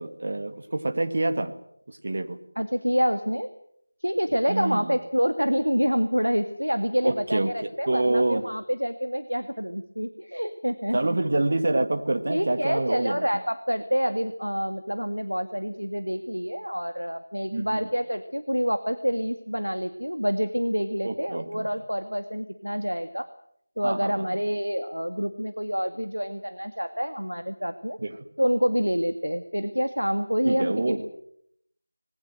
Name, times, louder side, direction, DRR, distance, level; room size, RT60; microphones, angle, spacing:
voice 1, 0.0-1.5 1.9-2.4 4.5-5.0 7.0-8.4 10.9-13.3 17.5-17.8 21.0-21.7 23.8-24.4 28.0-28.2 30.4-31.0, right 2 dB, 40° right, 7 dB, 2.0 m, -27 dB
voice 2, 2.6-3.5 4.0-11.2 12.3-23.3 23.8-28.0 28.4-31.2, equal, 85° right, 9 dB, 1.9 m, -27 dB
26.0 x 20.5 x 7.8 m, 0.71 s
figure-of-eight pair, 170°, 0 cm